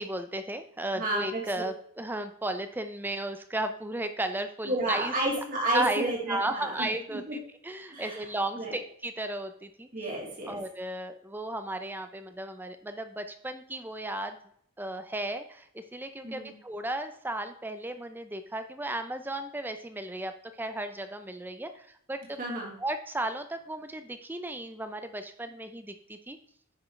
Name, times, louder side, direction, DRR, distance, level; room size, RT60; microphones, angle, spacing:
voice 1, 0.0-5.1 5.7-7.2 7.6-9.9 10.5-14.4 14.8-20.3 20.6-22.4 22.8-26.4, right 1 dB, 10° right, 8 dB, 0.5 m, -34 dB
voice 2, 0.9-1.4 4.7-7.4 7.9-8.2 8.6-8.8 9.9-10.6 16.2-16.5 22.4-22.7, right 1 dB, 40° right, -3 dB, 2.5 m, -31 dB
9.5 x 6.2 x 3.2 m, 0.64 s
head